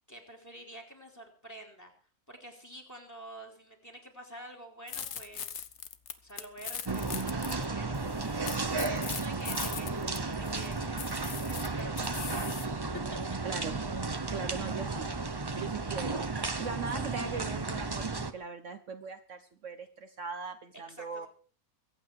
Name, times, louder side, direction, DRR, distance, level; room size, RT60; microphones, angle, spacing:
voice 1, 0.1-1.9 2.3-5.6 6.2-10.8 11.3-12.8 13.5-13.7 20.9-21.3, right 1 dB, 10° left, 3 dB, 3.4 m, -49 dB
sound 1, 4.9-7.7 7.9-12.7, left 8 dB, 55° left, 1.2 m, -40 dB
sound 2, 6.9-18.3, right 3 dB, 25° right, 0.6 m, -34 dB
voice 2, 13.4-13.8 14.3-15.1 15.6-21.3, right 5 dB, 60° right, 8 dB, 1.2 m, -40 dB
23.0 x 8.9 x 4.7 m, 0.42 s
omnidirectional pair, 1.5 m